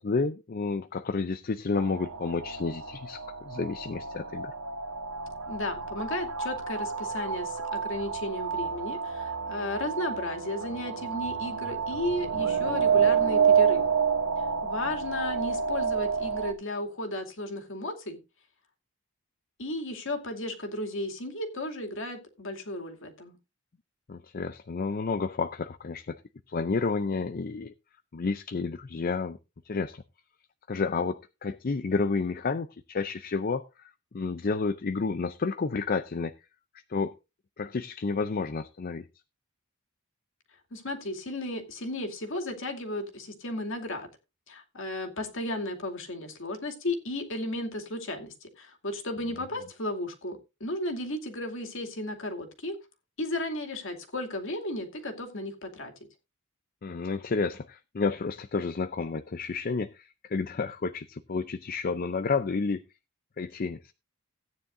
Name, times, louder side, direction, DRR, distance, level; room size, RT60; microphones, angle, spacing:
voice 1, 0.0-4.5 24.1-26.2 26.5-27.7 28.1-29.4 29.6-30.0 30.7-36.3 36.9-37.1 37.6-39.1 56.8-62.8 63.4-63.9, left 4 dB, 40° left, 0.5 m, -30 dB
sound 1, 1.7-16.5, right 6 dB, 90° right, 1.4 m, -29 dB
voice 2, 5.5-13.9 14.6-18.2 19.6-23.4 40.7-44.1 44.5-52.8 53.2-55.9, left 1 dB, 60° left, 2.4 m, -34 dB
16.0 x 9.5 x 2.6 m
head